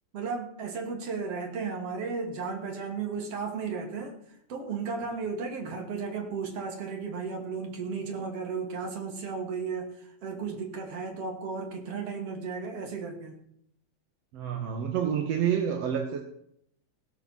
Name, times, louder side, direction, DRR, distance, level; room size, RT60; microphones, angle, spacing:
voice 1, 0.1-4.2 4.5-13.3, right 5 dB, 45° right, 2 dB, 3.2 m, -34 dB
voice 2, 14.3-16.2, right 8 dB, 60° right, 3 dB, 1.8 m, -28 dB
17.5 x 8.4 x 7.4 m, 0.72 s
omnidirectional pair, 4.3 m